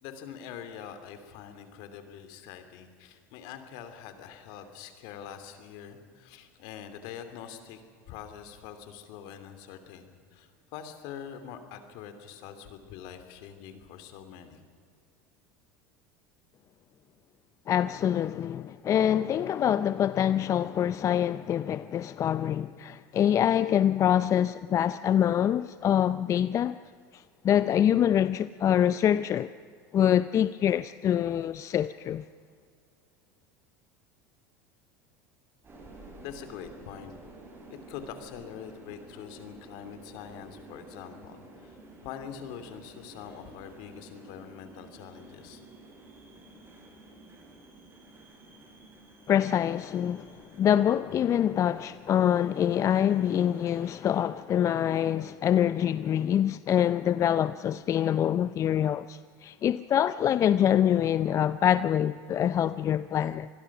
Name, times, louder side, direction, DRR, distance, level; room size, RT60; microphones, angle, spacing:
voice 1, 0.0-7.8 8.1-14.6 36.2-37.1 37.7-41.8 42.0-45.6, left 8 dB, 65° left, 2.8 m, -44 dB
voice 2, 17.7-26.8 27.1-29.5 29.9-32.2 49.3-63.5, left 10 dB, 40° left, 0.5 m, -25 dB
sound 1, 35.6-54.2, right 2 dB, 30° right, 7.9 m, -51 dB
26.5 x 21.0 x 6.1 m
hypercardioid pair, 90°, 8 cm